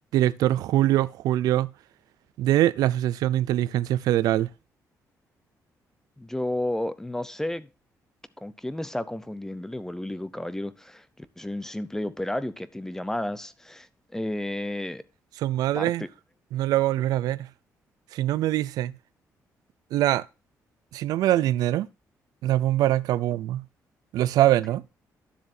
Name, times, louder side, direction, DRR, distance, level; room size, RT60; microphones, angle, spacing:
voice 1, 0.1-1.7 2.4-4.5 15.4-16.0 16.5-17.5 18.1-18.9 19.9-20.2 20.9-21.9 22.4-23.6 24.1-24.8, right 13 dB, 90° right, 0.4 m, -23 dB
voice 2, 6.2-7.7 8.4-13.9 14.1-15.0 15.7-16.1, left 1 dB, 5° left, 0.7 m, -32 dB
12.0 x 7.3 x 2.7 m
cardioid pair, 115°, 6 cm